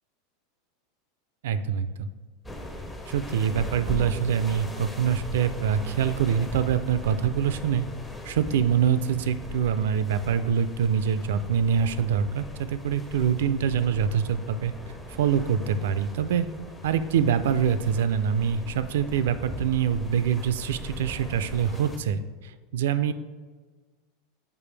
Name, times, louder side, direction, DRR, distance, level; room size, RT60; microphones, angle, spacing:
voice 1, 1.4-2.1 3.1-7.9 8.2-14.7 15.1-16.5 16.8-22.2 22.7-23.1, right 8 dB, 80° right, 12 dB, 0.4 m, -25 dB
sound 1, 2.4-22.0, left 1 dB, 10° left, 0.5 m, -39 dB
6.8 x 5.3 x 3.3 m, 1.4 s
supercardioid pair, 160°, 0 cm